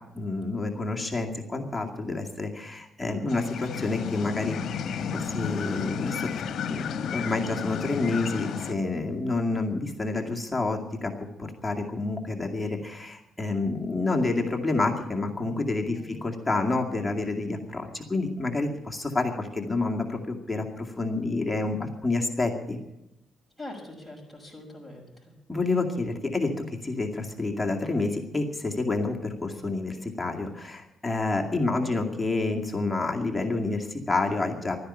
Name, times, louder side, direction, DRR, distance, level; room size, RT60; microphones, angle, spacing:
voice 1, 0.1-4.6 5.1-6.4 6.7-11.1 11.4-22.8 25.5-26.5 26.8-34.8, left 3 dB, 10° left, 1 dB, 2.3 m, -28 dB
sound 1, 3.3-8.7, left 6 dB, 65° left, 1.0 m, -32 dB
voice 2, 23.6-25.3, left 1 dB, 5° right, -1 dB, 6.4 m, -43 dB
13.0 x 10.0 x 10.0 m, 0.88 s
cardioid pair, 90°, 0 cm